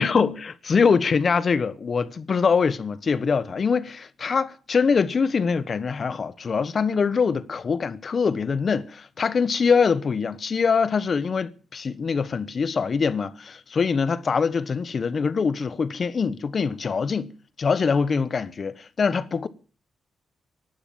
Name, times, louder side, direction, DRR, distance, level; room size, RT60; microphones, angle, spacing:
voice 1, 0.0-17.3 17.6-19.5, left 5 dB, 40° left, 1.1 m, -23 dB
17.0 x 12.0 x 7.1 m
wide cardioid pair, 135°, 0 cm